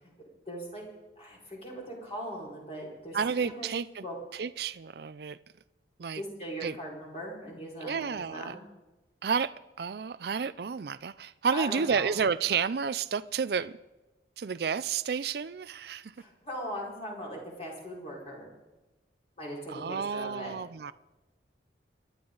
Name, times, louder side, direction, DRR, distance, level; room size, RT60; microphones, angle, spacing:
voice 1, 0.5-0.8 1.2-3.7 4.0-4.1 6.1-8.6 11.5-12.1 16.2-18.5 19.4-20.5, equal, 35° left, 4.9 m, -40 dB
voice 2, 3.1-4.0 4.3-5.4 6.0-6.2 6.6-6.8 7.8-8.6 9.2-13.8 14.4-16.1 19.7-20.9, right 6 dB, 60° right, 0.4 m, -31 dB
29.0 x 11.5 x 4.0 m
head